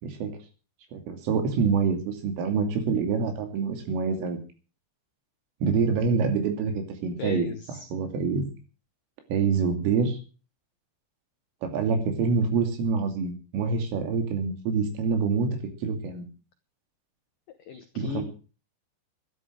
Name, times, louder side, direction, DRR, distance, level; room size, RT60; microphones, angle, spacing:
voice 1, 0.0-0.4 0.9-4.4 5.6-7.5 7.9-8.5 9.3-10.2 11.6-16.3 18.0-18.2, right 5 dB, 85° right, 5 dB, 5.3 m, -26 dB
voice 2, 7.2-7.9 17.7-18.2, left 8 dB, 85° left, 8 dB, 1.9 m, -35 dB
13.0 x 11.5 x 6.3 m, 0.36 s
omnidirectional pair, 5.7 m